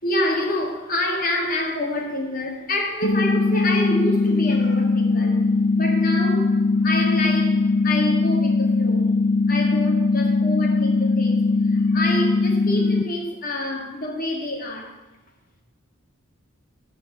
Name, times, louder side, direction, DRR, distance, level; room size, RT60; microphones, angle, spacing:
voice 1, 0.0-5.4 5.8-9.1 9.5-14.9, left 1 dB, 40° left, 1 dB, 2.2 m, -27 dB
sound 1, 3.0-13.0, left 3 dB, 65° left, 0.5 m, -20 dB
14.0 x 5.1 x 8.2 m, 1.2 s
head